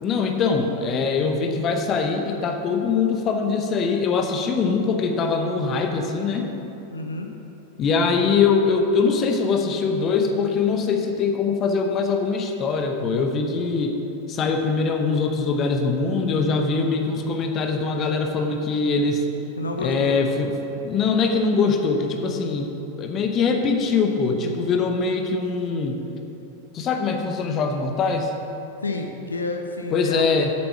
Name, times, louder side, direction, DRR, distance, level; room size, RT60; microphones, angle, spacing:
voice 1, 0.0-6.5 7.8-14.0 14.3-19.3 19.8-20.5 20.8-26.0 26.7-28.3 29.9-30.5, left 4 dB, 30° left, 4 dB, 0.9 m, -22 dB
voice 2, 6.9-7.3 19.6-20.2 28.8-30.3, left 2 dB, 75° left, 4 dB, 0.8 m, -29 dB
8.6 x 7.8 x 5.8 m, 3.0 s
figure-of-eight pair, 90°, 0 cm